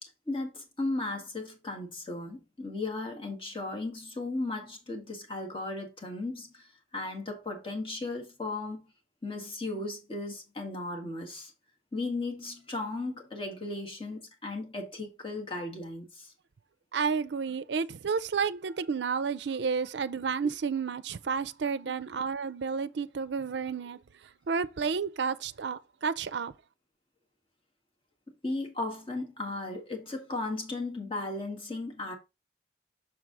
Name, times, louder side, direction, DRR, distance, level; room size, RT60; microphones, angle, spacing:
voice 1, 0.0-8.9 9.2-11.5 11.9-16.3 28.3-32.1, left 2 dB, 30° left, 1.7 m, -36 dB
voice 2, 16.9-24.0 24.5-26.5, right 5 dB, 70° right, 0.5 m, -31 dB
6.4 x 4.7 x 3.8 m
head